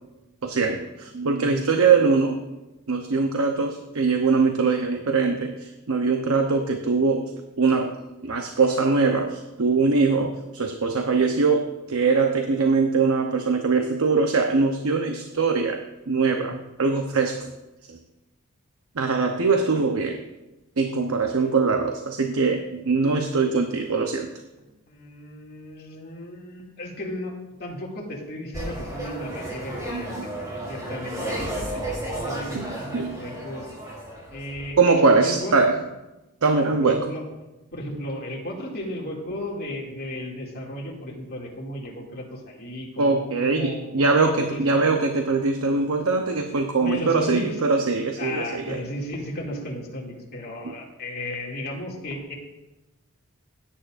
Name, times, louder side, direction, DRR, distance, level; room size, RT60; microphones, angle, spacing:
voice 1, 0.4-2.4 2.9-7.3 7.6-17.5 17.9-18.0 19.0-20.3 20.8-24.3 29.9-30.3 32.5-33.2 34.8-35.8 36.4-37.1 43.0-48.8, right 4 dB, 75° right, 5 dB, 0.8 m, -22 dB
voice 2, 24.6-27.3 27.6-33.7 34.3-35.6 36.6-37.2 37.7-44.8 46.8-47.6 48.1-52.3, left 1 dB, 45° left, -2 dB, 2.4 m, -35 dB
sound 1, 28.5-34.7, right 1 dB, 15° right, 3.3 m, -33 dB
16.5 x 9.2 x 2.5 m, 1.0 s
head